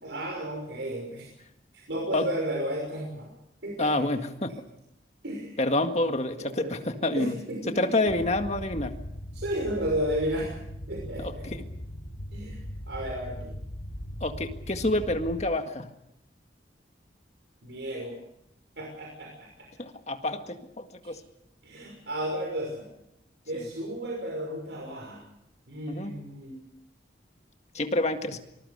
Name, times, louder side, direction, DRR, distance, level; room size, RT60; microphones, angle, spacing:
voice 1, 0.0-1.3 1.7-3.3 3.6-3.9 5.2-5.5 6.3-6.7 7.1-7.9 9.3-10.5 10.9-11.5 12.3-12.6 12.9-13.5 17.6-18.2 18.8-19.7 21.0-21.1 21.6-22.8 23.5-25.2 25.7-26.6, right 1 dB, 85° right, -1 dB, 6.0 m, -33 dB
voice 2, 3.8-4.6 5.6-7.4 7.7-9.0 11.2-11.6 14.2-15.9 19.8-21.2 23.6-23.7 25.9-26.2 27.7-28.4, left 2 dB, 40° left, 6 dB, 1.9 m, -28 dB
sound 1, 8.1-15.4, equal, 70° left, 3.0 m, -39 dB
25.5 x 20.5 x 6.7 m, 0.81 s
head